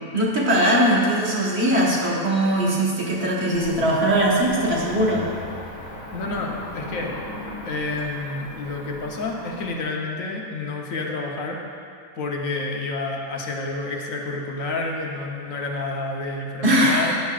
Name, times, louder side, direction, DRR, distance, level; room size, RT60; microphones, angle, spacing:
voice 1, 0.1-5.3 16.6-17.2, right 1 dB, 50° right, -4 dB, 1.7 m, -20 dB
Cricket / Motor vehicle (road), 3.5-9.8, left 1 dB, 30° left, 1.3 m, -38 dB
voice 2, 6.1-7.1 7.6-11.6 12.1-17.2, left 3 dB, 75° left, 0 dB, 1.4 m, -29 dB
12.0 x 10.0 x 2.4 m, 2.4 s
omnidirectional pair, 1.4 m